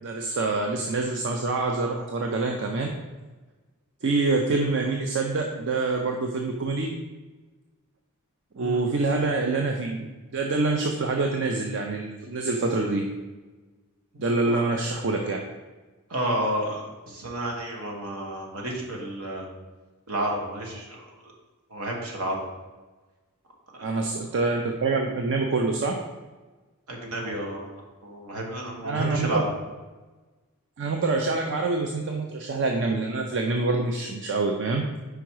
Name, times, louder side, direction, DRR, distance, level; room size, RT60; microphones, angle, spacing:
voice 1, 0.0-2.9 4.0-6.9 8.6-10.0 10.3-13.0 14.2-15.4 23.8-26.0 28.8-29.3 30.8-34.9, right 3 dB, 55° right, 2 dB, 0.5 m, -26 dB
voice 2, 14.1-14.7 16.1-19.5 20.1-21.0 21.7-22.4 23.7-24.0 26.9-29.4, right 1 dB, 75° right, -1 dB, 1.4 m, -31 dB
5.1 x 4.7 x 4.6 m, 1.3 s
head